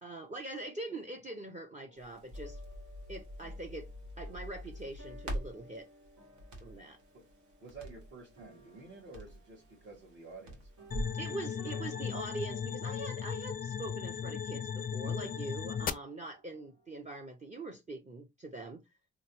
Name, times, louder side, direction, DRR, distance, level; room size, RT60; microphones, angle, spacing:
voice 1, 0.0-2.6 3.1-3.9 4.2-5.9 6.6-7.0 11.1-18.8, right 2 dB, 25° right, 0.6 m, -43 dB
sound 1, 1.9-17.0, right 2 dB, 90° right, 1.8 m, -59 dB
Crackle, 2.0-11.2, equal, 70° right, 1.4 m, -44 dB
voice 2, 7.6-10.7, right 3 dB, 45° right, 1.6 m, -51 dB
sound 2, 10.9-15.9, left 8 dB, 30° left, 0.4 m, -37 dB
3.0 x 2.9 x 3.0 m
cardioid pair, 90°, 30 cm